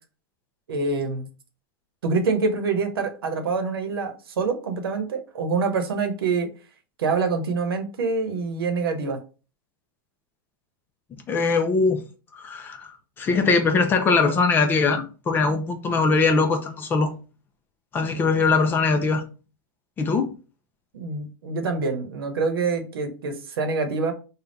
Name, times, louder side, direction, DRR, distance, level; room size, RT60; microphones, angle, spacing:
voice 1, 0.7-1.3 2.0-6.5 7.0-9.2 18.2-18.3 20.9-24.1, right 4 dB, 90° right, 0.9 m, -26 dB
voice 2, 11.3-12.0 12.3-12.9 13.2-17.1 17.9-19.2 20.0-20.3, left 4 dB, 15° left, 0.5 m, -21 dB
3.5 x 2.3 x 3.9 m
supercardioid pair, 150°, 12 cm